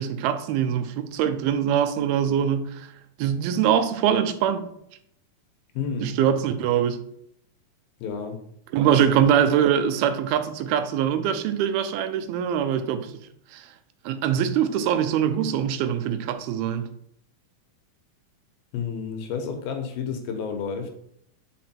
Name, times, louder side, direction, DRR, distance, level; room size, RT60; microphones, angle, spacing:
voice 1, 0.0-2.9 3.2-4.7 6.0-7.0 8.7-13.1 13.5-13.6 14.1-16.9, right 9 dB, 90° right, 2.6 m, -23 dB
voice 2, 5.8-6.1 8.0-8.4 8.9-9.1 18.7-20.9, left 6 dB, 80° left, 2.8 m, -30 dB
6.1 x 5.0 x 4.3 m
omnidirectional pair, 4.3 m